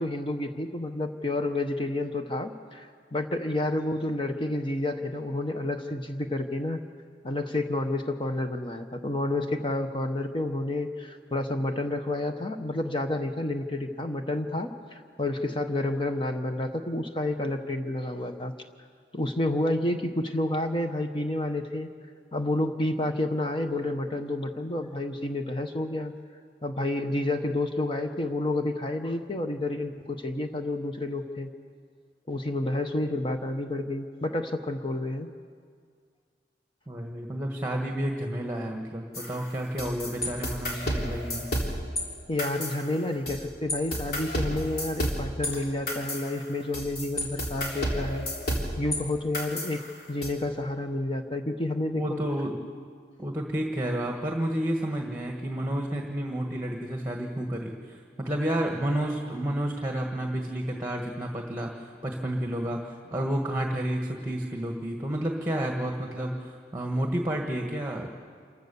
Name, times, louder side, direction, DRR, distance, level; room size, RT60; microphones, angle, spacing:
voice 1, 0.0-6.8 7.2-18.5 19.1-21.9 22.3-26.1 26.6-31.5 32.3-35.3 42.3-48.3 48.8-52.2, left 1 dB, 30° left, 6 dB, 0.9 m, -30 dB
voice 2, 36.9-41.5 51.9-52.6 53.2-68.1, right 1 dB, 15° right, 2 dB, 1.5 m, -30 dB
sound 1, 39.1-42.0 42.4-43.4 43.7-49.0 49.3-50.3, equal, 60° left, 3.5 m, -31 dB
27.0 x 15.0 x 6.9 m, 2.1 s
head